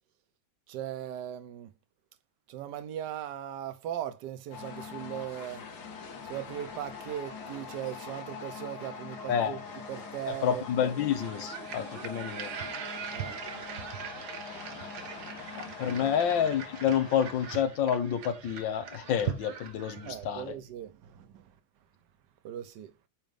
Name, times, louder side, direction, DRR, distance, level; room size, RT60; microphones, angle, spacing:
voice 1, 0.7-1.7 2.5-5.6 6.2-9.6 9.9-10.6 13.1-13.4 15.8-16.0 20.0-21.5 22.4-22.9, right 11 dB, 65° right, 1.3 m, -39 dB
sound 1, 4.5-17.6, left 5 dB, 60° left, 1.9 m, -43 dB
voice 2, 9.3-9.6 10.3-12.5 15.6-20.5, left 8 dB, 75° left, 1.6 m, -29 dB
sound 2, 11.2-20.5, right 8 dB, 85° right, 1.8 m, -41 dB
9.0 x 3.1 x 5.2 m
omnidirectional pair, 2.1 m